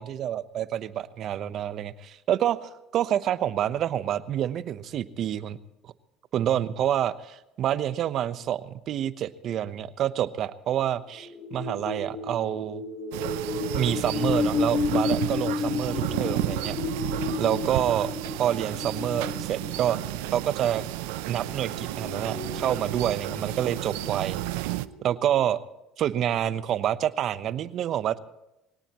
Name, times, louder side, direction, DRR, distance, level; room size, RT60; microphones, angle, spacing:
voice 1, 0.0-5.6 6.3-12.8 13.7-16.7 17.4-18.1 18.4-20.0 20.3-20.8 21.3-24.4 25.0-25.6 26.0-28.2, right 10 dB, 55° right, 14 dB, 1.0 m, -27 dB
sound 1, 11.1-25.5, left 4 dB, 55° left, 2.8 m, -33 dB
sound 2, 13.1-24.9, right 18 dB, 80° right, 0.6 m, -32 dB
23.0 x 18.0 x 3.1 m, 0.90 s
supercardioid pair, 80°, 0 cm